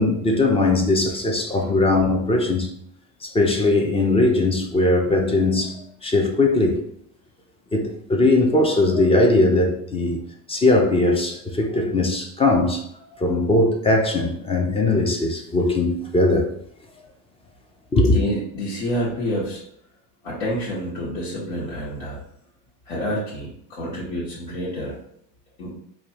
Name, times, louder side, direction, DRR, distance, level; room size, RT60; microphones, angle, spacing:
voice 1, 0.0-2.7 3.2-6.8 7.7-10.2 10.5-12.8 13.2-16.5 17.9-18.2, left 2 dB, 15° left, 0.3 m, -20 dB
voice 2, 18.0-19.6 20.2-22.2 22.8-25.0 25.6-25.7, equal, 80° left, 1.4 m, -28 dB
4.9 x 2.3 x 2.9 m
supercardioid pair, 120°, 45 cm